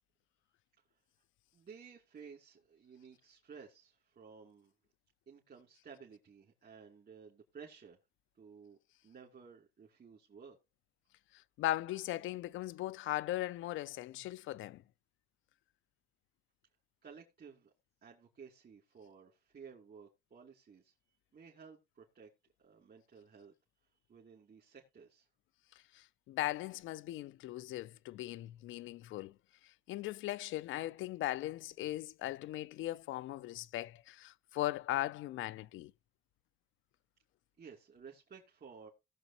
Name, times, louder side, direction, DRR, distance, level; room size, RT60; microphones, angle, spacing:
voice 1, 1.5-4.7 5.3-8.0 8.3-8.8 9.0-10.6 17.0-17.7 18.0-20.9 21.3-22.3 22.6-23.5 24.1-25.3 37.6-38.9, right 6 dB, 50° right, 2.7 m, -55 dB
voice 2, 11.6-14.8 25.9-29.3 29.9-35.9, left 15 dB, 80° left, 0.4 m, -38 dB
18.0 x 6.8 x 2.9 m
cardioid pair, 90°, 20 cm